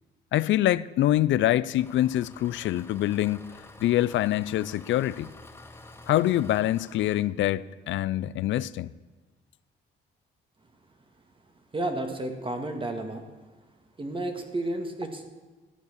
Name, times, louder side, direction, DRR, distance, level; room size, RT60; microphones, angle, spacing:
voice 1, 0.3-3.5 3.8-5.3 6.1-8.9, left 13 dB, 70° left, 0.5 m, -25 dB
Engine, 1.8-7.2, left 2 dB, 10° left, 1.2 m, -49 dB
voice 2, 11.7-13.2 14.0-15.3, right 1 dB, 25° right, 1.8 m, -31 dB
13.5 x 8.3 x 6.6 m
cardioid pair, 90°, 20 cm